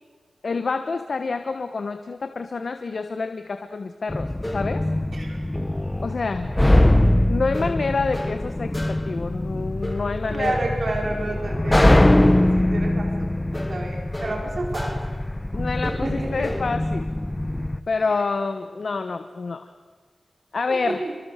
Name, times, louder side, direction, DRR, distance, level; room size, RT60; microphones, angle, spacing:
voice 1, 0.4-4.9 6.0-6.8 7.3-10.6 15.5-17.1 17.9-19.7 20.5-21.0, left 4 dB, 60° left, 8 dB, 1.3 m, -27 dB
sound 1, 4.1-17.8, left 1 dB, 15° left, 1.0 m, -22 dB
voice 2, 10.3-15.0 15.8-16.5 20.7-21.0, right 2 dB, 60° right, 1 dB, 4.6 m, -31 dB
29.5 x 25.0 x 6.7 m, 1.5 s
wide cardioid pair, 110°, 0 cm